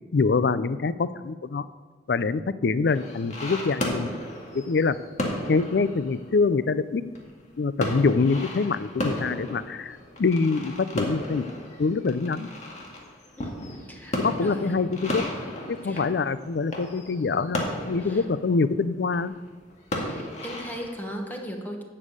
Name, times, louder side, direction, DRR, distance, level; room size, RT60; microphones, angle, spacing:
voice 1, 0.1-1.7 2.1-4.1 4.5-5.0 5.5-7.0 7.6-11.4 11.8-12.5 14.2-15.2 15.7-19.3, left 4 dB, 70° left, 15 dB, 0.4 m, -25 dB
sound 1, 2.9-21.0, left 1 dB, 40° left, 1.9 m, -34 dB
voice 2, 13.4-14.8 15.8-16.1 18.0-18.2 20.0-21.8, equal, 10° left, 1 dB, 1.2 m, -38 dB
11.5 x 5.5 x 8.1 m, 1.4 s
head